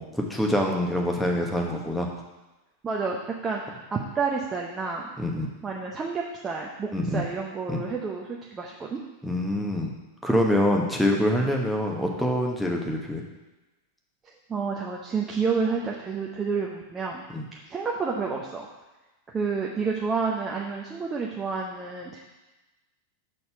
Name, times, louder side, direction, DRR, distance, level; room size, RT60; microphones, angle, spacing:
voice 1, 0.0-2.1 5.2-5.5 6.9-7.2 7.7-7.8 9.2-9.9 10.2-13.2 17.3-17.4, left 1 dB, ahead, 0 dB, 1.1 m, -25 dB
voice 2, 2.8-5.1 5.6-9.0 11.4-11.5 14.5-17.2 17.7-18.7 19.3-22.2, right 5 dB, 20° right, -1 dB, 0.8 m, -29 dB
6.5 x 4.1 x 5.7 m, 1.1 s
figure-of-eight pair, 90°, 0 cm